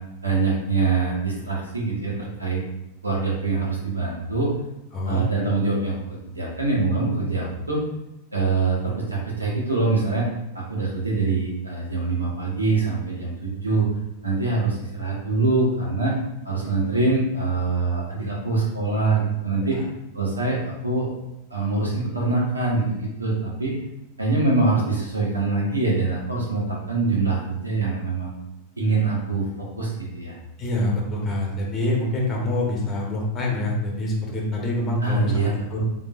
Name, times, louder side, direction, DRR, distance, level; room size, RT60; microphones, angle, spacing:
voice 1, 0.2-2.6 3.0-4.5 5.1-6.0 6.2-7.8 8.3-10.3 10.7-13.9 14.2-16.2 16.4-19.8 20.1-21.1 21.5-23.7 24.2-28.3 28.8-30.4 35.0-35.8, right 3 dB, 80° right, -5 dB, 1.3 m, -24 dB
voice 2, 4.9-5.2 19.6-19.8 30.6-35.8, left 1 dB, 25° left, -1 dB, 1.1 m, -26 dB
3.7 x 3.6 x 2.5 m, 0.90 s
figure-of-eight pair, 90°, 0 cm